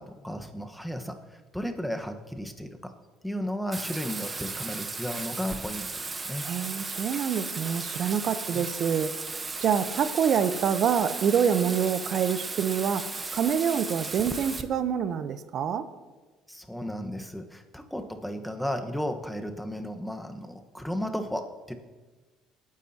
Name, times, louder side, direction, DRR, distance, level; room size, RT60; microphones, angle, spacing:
voice 1, 0.0-2.9 3.2-6.5 8.5-8.6 16.5-21.7, equal, 5° left, 5 dB, 1.3 m, -34 dB
Bathtub (filling or washing), 3.7-14.6, right 3 dB, 25° right, 1.0 m, -35 dB
voice 2, 6.4-9.1 9.6-15.9, right 7 dB, 55° right, 12 dB, 0.8 m, -26 dB
19.5 x 9.8 x 2.9 m, 1.3 s
supercardioid pair, 75°, 0 cm